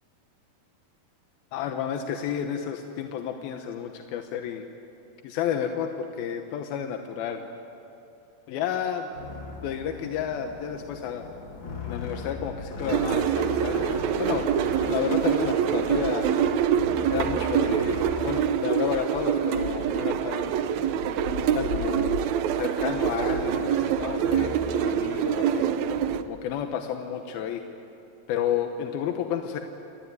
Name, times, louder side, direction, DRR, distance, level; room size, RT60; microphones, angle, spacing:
voice 1, 1.5-4.7 5.2-7.4 8.5-9.0 9.6-11.3 11.8-13.9 14.2-14.5 14.9-16.4 17.1-20.6 21.5-22.1 22.5-25.7 26.3-27.6 28.3-29.6, left 8 dB, 85° left, 5 dB, 3.0 m, -31 dB
sound 1, 9.1-26.2, left 3 dB, 35° left, 2.5 m, -38 dB
sound 2, 12.9-26.2, right 9 dB, 70° right, 1.7 m, -25 dB
28.5 x 20.0 x 9.5 m, 2.7 s
omnidirectional pair, 4.2 m